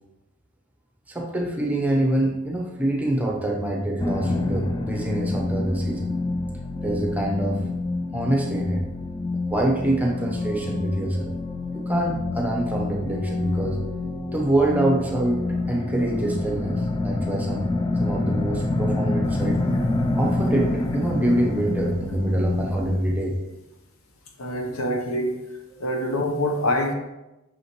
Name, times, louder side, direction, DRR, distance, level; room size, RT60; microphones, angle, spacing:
voice 1, 1.1-6.1 6.8-7.6 8.1-8.9 9.5-11.3 11.7-13.8 14.3-17.7 18.0-19.6 20.1-23.4 24.6-24.7 26.0-26.2, right 1 dB, 5° right, 0 dB, 0.7 m, -25 dB
sound 1, 4.0-23.0, left 2 dB, 20° left, 0.3 m, -27 dB
voice 2, 24.4-25.3 25.8-26.9, left 1 dB, 65° left, 3 dB, 0.9 m, -25 dB
6.1 x 5.7 x 3.0 m, 0.98 s
head